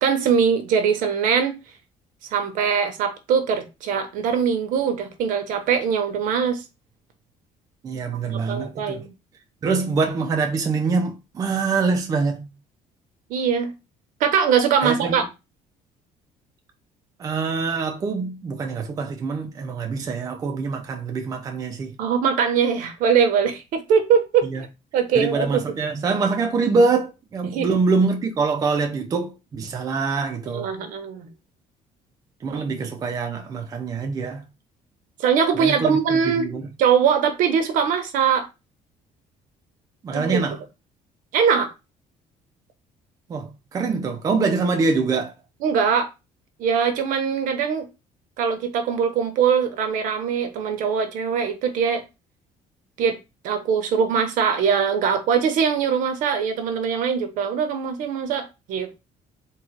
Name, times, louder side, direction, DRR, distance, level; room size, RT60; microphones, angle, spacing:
voice 1, 0.0-1.6 2.3-6.6 8.3-9.1 13.3-13.7 14.2-15.2 22.0-24.5 24.9-25.6 27.4-27.7 30.5-31.3 32.5-32.6 35.2-36.5 36.8-38.5 40.1-40.5 41.3-41.7 45.6-46.1 46.6-47.9 48.4-52.0 53.0-53.2 53.4-59.1, right 7 dB, 70° right, 0.9 m, -22 dB
voice 2, 7.8-9.0 9.6-12.5 14.8-15.2 17.2-22.0 24.4-24.6 25.1-30.7 32.4-34.4 35.6-36.0 36.3-36.7 40.0-40.6 43.3-45.3, right 4 dB, 25° right, 0.5 m, -24 dB
3.8 x 2.3 x 4.5 m
cardioid pair, 170°, 14 cm